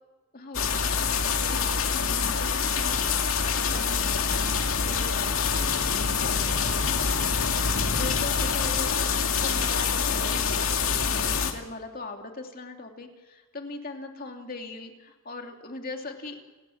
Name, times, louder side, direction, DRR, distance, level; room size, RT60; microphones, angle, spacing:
voice 1, 0.3-3.1 3.4-16.5, left 3 dB, 45° left, 3 dB, 2.7 m, -41 dB
sound 1, 0.5-11.5, left 6 dB, 80° left, 2.4 m, -26 dB
30.0 x 16.5 x 7.2 m, 1.3 s
head